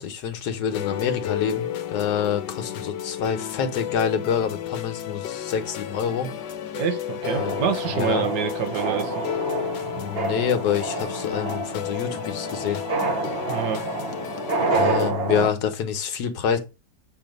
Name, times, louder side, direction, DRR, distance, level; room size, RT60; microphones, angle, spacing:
voice 1, 0.0-6.3 7.4-7.6 7.9-8.2 9.8-12.8 14.7-16.6, left 8 dB, 70° left, 1.4 m, -27 dB
sound 1, 0.7-15.1, left 11 dB, 85° left, 1.3 m, -32 dB
voice 2, 6.7-9.1 13.4-13.9, right 7 dB, 75° right, 1.5 m, -27 dB
sound 2, 7.2-15.5, right 3 dB, 50° right, 0.7 m, -28 dB
7.7 x 2.7 x 5.2 m
omnidirectional pair, 1.9 m